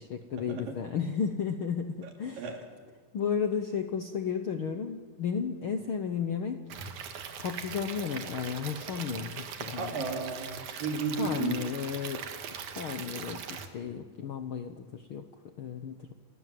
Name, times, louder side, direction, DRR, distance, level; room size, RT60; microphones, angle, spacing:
voice 1, 0.0-2.5 3.1-6.6 7.4-9.9 11.2-15.3 15.6-16.1, left 7 dB, 70° left, 7 dB, 1.3 m, -33 dB
Stream / Liquid, 6.7-13.7, right 7 dB, 65° right, 2.9 m, -40 dB
voice 2, 9.8-11.6, right 4 dB, 90° right, 3 dB, 4.6 m, -33 dB
29.0 x 20.0 x 7.7 m, 1.5 s
omnidirectional pair, 3.8 m